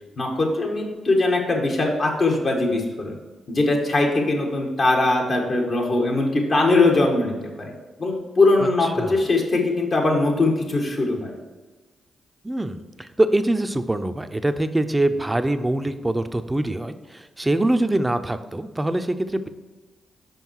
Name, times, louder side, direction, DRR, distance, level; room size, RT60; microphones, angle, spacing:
voice 1, 0.2-3.2 3.5-7.7 8.0-11.3, left 2 dB, 55° left, 0 dB, 1.7 m, -21 dB
voice 2, 8.6-9.3 12.4-19.5, right 1 dB, 15° right, 9 dB, 0.6 m, -24 dB
5.6 x 5.2 x 4.7 m, 1.3 s
supercardioid pair, 50°, 0 cm